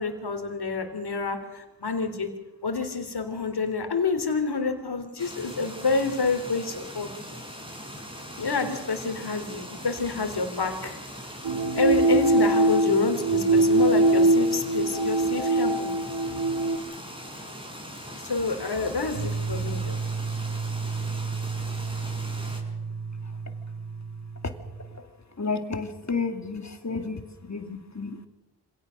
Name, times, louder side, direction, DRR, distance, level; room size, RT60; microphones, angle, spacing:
voice 1, 0.0-2.3 2.6-7.1 8.4-11.0 11.8-15.9 18.1-20.0, left 4 dB, 65° left, 6 dB, 3.7 m, -28 dB
sound 1, 5.2-22.6, equal, 10° right, 6.4 m, -41 dB
sound 2, 11.4-16.8, right 2 dB, 85° right, 2.0 m, -22 dB
sound 3, 19.1-25.0, right 4 dB, 55° right, 1.3 m, -32 dB
voice 2, 25.4-28.3, left 4 dB, 40° left, 7 dB, 2.5 m, -31 dB
25.5 x 17.5 x 6.6 m, 1.1 s
cardioid pair, 50°, 42 cm